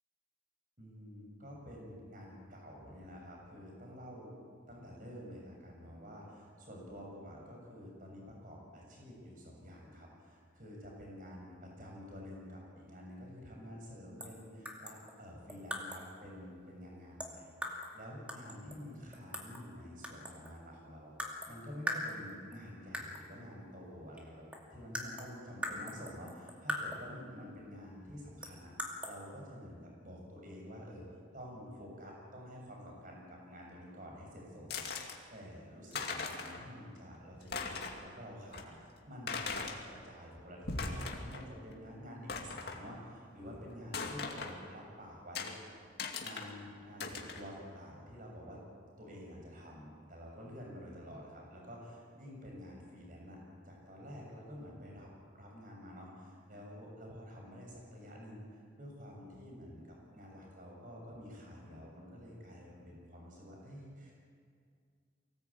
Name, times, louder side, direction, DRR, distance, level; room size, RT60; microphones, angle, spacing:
voice 1, 0.8-4.4 4.7-24.4 24.7-45.7 46.2-48.6 49.0-53.4 53.7-64.1, equal, 45° right, -1 dB, 7.0 m, -49 dB
sound 1, 14.2-14.4 14.7-16.1 17.2-18.0 18.3-19.7 20.0-20.6 21.2-21.6 21.9-22.6 22.9-23.3 24.2-24.3 24.5-27.2 28.4-29.2, equal, 5° right, 2.3 m, -41 dB
sound 2, 34.7-35.2 35.7-35.8 35.9-36.6 37.0-37.1 37.4-38.0 38.5-38.6 39.3-39.8 40.5-41.5 41.7-41.8 42.3-42.8 43.9-44.6 45.4-45.5 46.0-46.5 47.0-47.4, left 4 dB, 55° left, 2.4 m, -39 dB
24.0 x 18.0 x 8.6 m, 2.2 s
head